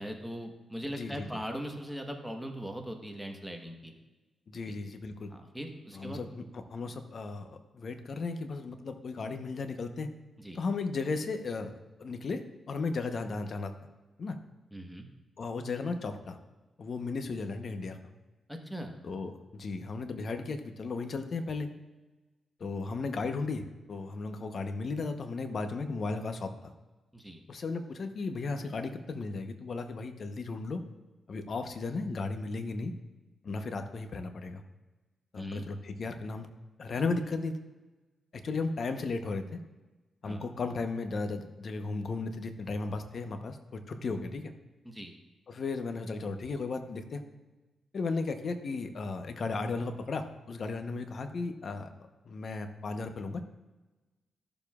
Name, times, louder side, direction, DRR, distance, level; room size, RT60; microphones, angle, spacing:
voice 1, 0.0-3.9 4.7-4.8 5.3-6.2 10.4-10.6 14.7-15.1 18.5-18.9 27.1-27.4 35.4-35.6 40.2-40.5 44.8-45.1, equal, ahead, 2 dB, 1.2 m, -40 dB
voice 2, 0.9-1.3 4.5-5.3 5.9-10.1 10.5-11.7 12.0-12.4 12.7-13.7 14.2-14.4 15.4-16.4 16.8-18.0 19.0-21.7 22.6-26.7 27.5-30.8 31.3-32.9 33.4-34.6 35.3-36.5 36.8-37.6 38.3-39.6 40.2-44.5 45.5-47.2 47.9-51.9 52.2-53.4, left 3 dB, 55° left, 7 dB, 0.9 m, -35 dB
14.0 x 7.0 x 2.4 m, 1.2 s
cardioid pair, 85°, 0 cm